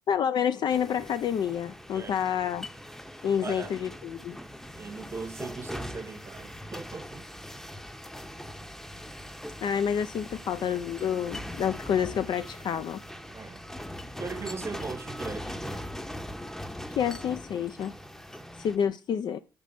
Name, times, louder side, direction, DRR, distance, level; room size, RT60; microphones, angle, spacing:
voice 1, 0.1-2.7 3.2-4.4 9.6-13.0 17.0-17.9 18.6-19.4, left 8 dB, 55° left, 0.4 m, -28 dB
sound 1, 0.7-18.8, equal, 5° left, 0.7 m, -41 dB
voice 2, 3.4-3.8 4.7-7.2 13.3-13.6 14.2-15.9, right 4 dB, 30° right, 0.8 m, -39 dB
6.9 x 3.1 x 5.2 m
hypercardioid pair, 50°, 9 cm